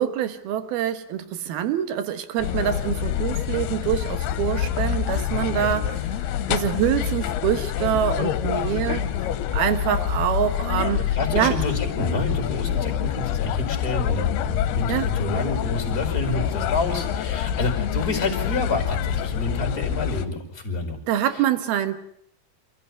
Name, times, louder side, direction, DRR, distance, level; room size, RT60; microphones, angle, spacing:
voice 1, 0.0-6.0 6.5-9.1 9.5-11.0 11.3-11.5 14.9-15.1 21.1-22.0, right 10 dB, 75° right, 11 dB, 3.1 m, -25 dB
sound 1, 2.4-20.3, left 10 dB, 80° left, 3.0 m, -26 dB
voice 2, 11.1-21.0 21.3-21.4, left 2 dB, 25° left, 5 dB, 5.2 m, -28 dB
28.5 x 15.0 x 9.5 m, 0.69 s
omnidirectional pair, 4.6 m